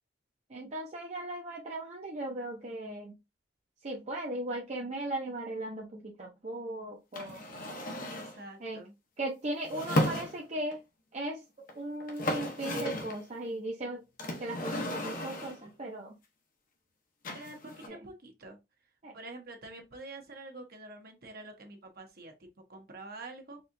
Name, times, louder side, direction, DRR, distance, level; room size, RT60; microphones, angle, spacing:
voice 1, 0.5-3.2 3.8-7.4 8.6-8.8 9.2-10.8 11.1-11.4 11.7-14.0 14.4-16.1 17.9-18.0 19.0-19.2, right 1 dB, 40° right, 0.6 m, -37 dB
sound 1, 7.1-8.4 9.6-10.7 11.7-11.8 12.0-13.2 14.2-15.7 17.2-17.9, left 1 dB, 50° left, 0.7 m, -34 dB
voice 2, 8.1-8.9 17.3-18.6 19.1-23.6, right 2 dB, 55° right, 1.0 m, -47 dB
4.2 x 2.4 x 2.6 m
head